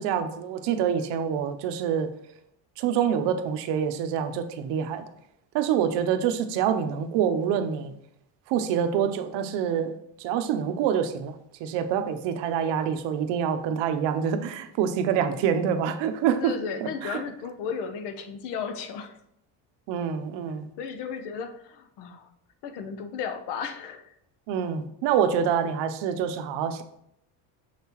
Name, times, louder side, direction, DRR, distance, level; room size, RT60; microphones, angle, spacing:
voice 1, 0.0-2.1 2.8-5.0 5.5-7.9 8.5-9.9 10.2-11.3 11.6-16.5 16.8-17.2 19.9-20.7 24.5-26.8, right 8 dB, 70° right, 9 dB, 0.7 m, -26 dB
voice 2, 16.4-19.2 20.8-22.3 22.6-24.1, left 6 dB, 65° left, 8 dB, 0.8 m, -34 dB
6.7 x 5.6 x 3.0 m, 0.76 s
cardioid pair, 165°, 44 cm